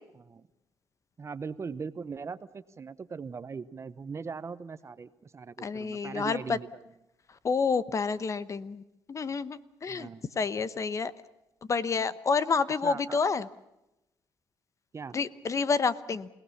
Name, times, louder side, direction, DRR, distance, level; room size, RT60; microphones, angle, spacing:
voice 1, 0.2-0.5 1.2-6.7 9.9-10.3 12.8-13.2 14.9-15.2, right 5 dB, 35° right, 14 dB, 0.9 m, -40 dB
voice 2, 5.6-6.6 7.4-8.8 9.1-10.1 10.4-11.1 11.7-13.5 15.1-16.3, left 5 dB, 40° left, 16 dB, 0.9 m, -29 dB
28.0 x 18.0 x 7.1 m, 0.93 s
cardioid pair, 95°, 8 cm